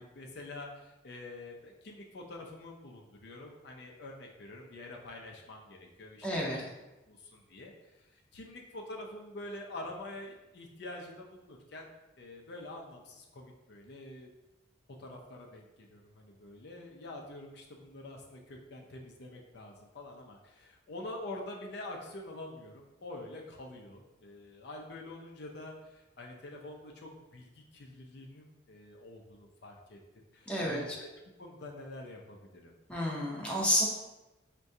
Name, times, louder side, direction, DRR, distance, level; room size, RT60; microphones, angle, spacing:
voice 1, 0.0-6.7 7.1-11.9 12.2-14.3 15.0-30.0 30.3-31.1 31.4-32.7, left 2 dB, 60° left, 0 dB, 0.5 m, -46 dB
voice 2, 6.2-6.6 30.5-30.8 32.9-33.8, equal, 5° left, -4 dB, 0.6 m, -30 dB
4.6 x 2.2 x 2.6 m, 1.0 s
head